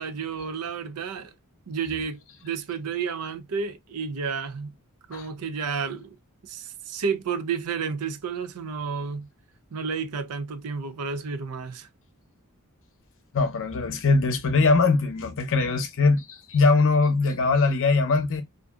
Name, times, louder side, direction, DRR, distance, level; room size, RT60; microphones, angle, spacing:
voice 1, 0.0-1.3 1.7-4.7 5.1-6.2 6.4-9.3 9.7-11.9, right 5 dB, 85° right, 0.5 m, -31 dB
voice 2, 13.3-18.4, left 3 dB, 60° left, 0.7 m, -21 dB
2.6 x 2.5 x 2.2 m
head